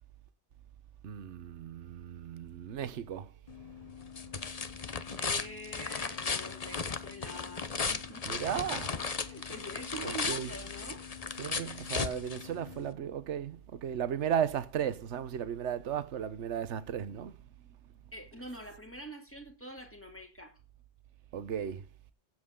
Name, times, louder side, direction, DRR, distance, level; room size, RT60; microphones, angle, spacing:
voice 1, 1.0-3.3 8.2-8.9 10.0-10.5 11.4-17.3 21.3-21.8, right 9 dB, 70° right, 1.2 m, -35 dB
sound 1, 3.5-12.9, left 5 dB, 35° left, 1.0 m, -36 dB
voice 2, 5.2-8.3 9.2-11.0 18.1-20.6, right 1 dB, 10° left, 3.0 m, -45 dB
16.0 x 7.9 x 3.7 m
omnidirectional pair, 1.2 m